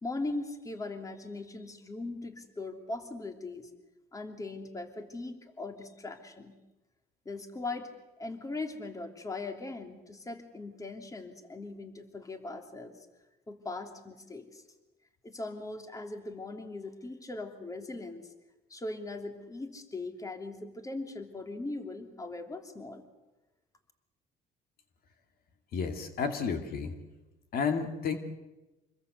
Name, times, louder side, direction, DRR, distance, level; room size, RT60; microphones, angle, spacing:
voice 1, 0.0-3.7 4.1-6.5 7.2-7.9 8.2-13.0 13.5-14.6 15.2-18.3 18.7-23.1, left 2 dB, 20° left, 6 dB, 2.9 m, -40 dB
voice 2, 25.7-27.0 27.5-28.2, left 6 dB, 60° left, 6 dB, 2.6 m, -31 dB
26.5 x 21.0 x 8.1 m, 1.1 s
cardioid pair, 110°, 17 cm